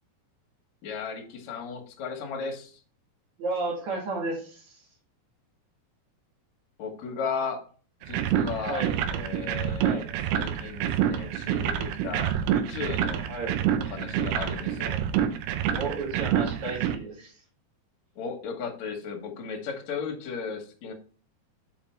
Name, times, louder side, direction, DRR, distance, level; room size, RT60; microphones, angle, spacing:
voice 1, 0.8-2.8 6.8-7.6 8.1-10.0 10.3-13.3 13.9-15.0 18.2-20.9, left 5 dB, 60° left, 3 dB, 2.0 m, -35 dB
voice 2, 3.4-4.8 8.7-9.0 9.8-10.2 13.3-13.7 15.7-17.3, right 3 dB, 55° right, -1 dB, 2.7 m, -33 dB
sound 1, 8.0-17.0, right 10 dB, 85° right, 2.6 m, -27 dB
6.7 x 5.3 x 4.4 m, 0.41 s
omnidirectional pair, 4.7 m